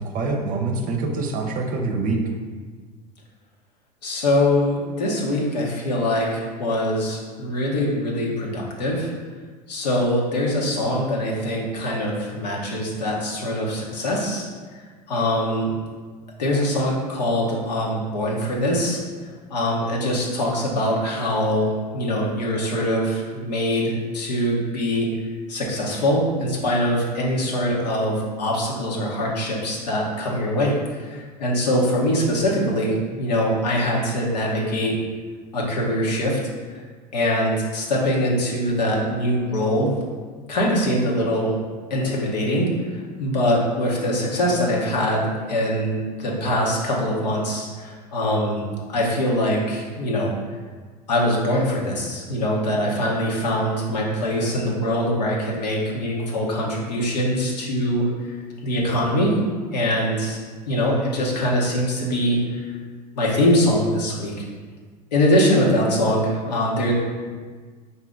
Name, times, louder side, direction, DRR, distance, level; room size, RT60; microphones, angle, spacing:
voice 1, 0.0-2.2, right 3 dB, 40° right, 3 dB, 0.7 m, -25 dB
voice 2, 4.0-9.1 9.7-14.5 15.1-15.7 16.4-19.0 19.5-25.1 25.5-34.9 35.5-36.4 37.1-39.9 40.5-41.6 41.9-48.6 48.9-50.4 51.1-58.3 58.6-59.4 59.7-60.4 60.7-62.8 63.1-64.4 65.1-66.9, equal, 75° left, -3 dB, 1.0 m, -23 dB
4.9 x 2.7 x 3.7 m, 1.5 s
hypercardioid pair, 80°, 21 cm